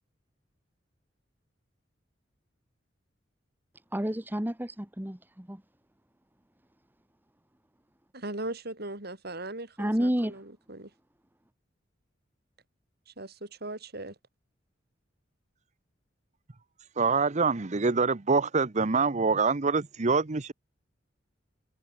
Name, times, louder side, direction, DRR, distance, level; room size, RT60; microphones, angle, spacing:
voice 1, 3.9-5.6 9.8-10.3, equal, 10° right, 1.4 m, -30 dB
voice 2, 8.1-10.9 13.1-14.2, right 2 dB, 55° right, 6.8 m, -39 dB
voice 3, 17.0-20.5, right 4 dB, 40° right, 0.8 m, -25 dB
head